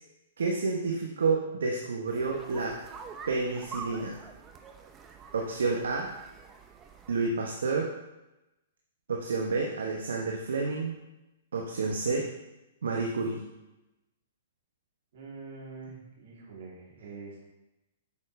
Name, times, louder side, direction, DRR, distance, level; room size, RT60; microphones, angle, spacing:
voice 1, 0.4-2.8 3.3-4.2 5.3-6.1 7.1-7.9 9.1-11.0 11.5-12.3 12.8-13.5, right 4 dB, 75° right, 0 dB, 1.0 m, -29 dB
sound 1, 2.1-7.3, right 5 dB, 20° right, 0.7 m, -46 dB
voice 2, 15.1-17.4, right 4 dB, 60° right, -4 dB, 3.0 m, -45 dB
8.4 x 6.5 x 3.2 m, 0.98 s
hypercardioid pair, 120°, 0 cm